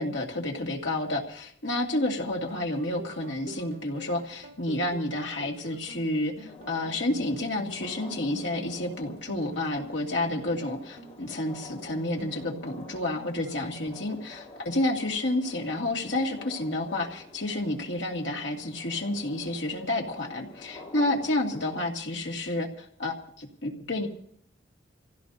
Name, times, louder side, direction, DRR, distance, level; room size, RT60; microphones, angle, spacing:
voice 1, 0.0-24.1, left 1 dB, 75° left, 0 dB, 2.2 m, -30 dB
sound 1, 2.5-13.9, right 1 dB, 60° right, 2.4 m, -46 dB
sound 2, 6.4-21.9, left 2 dB, 35° left, 4.5 m, -49 dB
27.0 x 16.0 x 2.7 m, 0.63 s
head